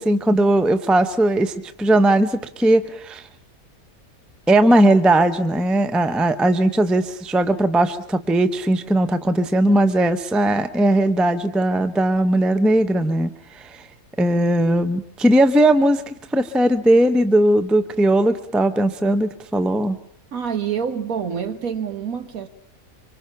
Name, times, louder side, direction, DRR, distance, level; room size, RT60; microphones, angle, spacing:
voice 1, 0.0-1.5 1.8-3.2 4.5-13.3 13.6-13.7 14.2-20.0, right 1 dB, ahead, 0.5 m, -18 dB
voice 2, 20.3-22.5, right 7 dB, 70° right, 1.7 m, -26 dB
25.5 x 24.5 x 5.8 m
omnidirectional pair, 1.6 m